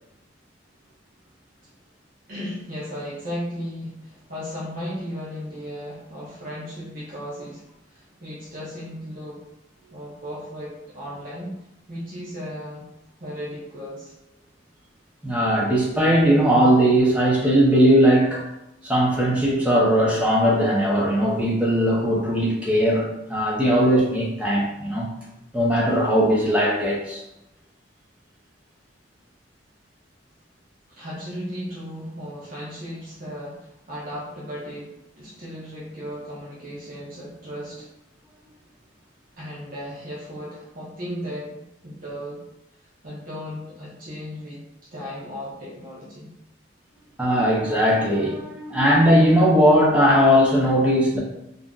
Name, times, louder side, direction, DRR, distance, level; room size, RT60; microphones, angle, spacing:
voice 1, 2.3-7.7 7.9-9.4 9.9-11.6 11.9-12.9 13.2-14.1 30.9-37.9 39.4-42.5 43.0-44.6 44.9-46.3, equal, 45° right, -7 dB, 0.7 m, -35 dB
voice 2, 15.2-18.4 18.8-25.1 25.5-27.2 47.2-51.2, equal, 5° right, -5 dB, 0.6 m, -19 dB
2.5 x 2.1 x 3.6 m, 0.88 s
head